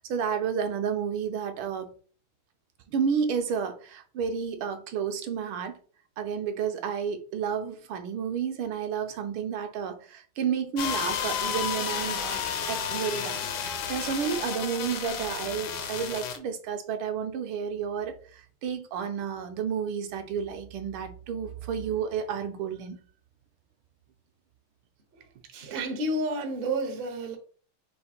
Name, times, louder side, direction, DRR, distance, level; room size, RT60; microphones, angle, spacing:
voice 1, 0.0-1.9 2.9-5.8 6.2-23.0, right 7 dB, 75° right, 1.4 m, -31 dB
sound 1, 10.8-16.4, left 7 dB, 70° left, 1.0 m, -32 dB
voice 2, 25.5-27.4, right 1 dB, 60° right, 0.5 m, -30 dB
5.0 x 2.4 x 4.2 m
omnidirectional pair, 2.4 m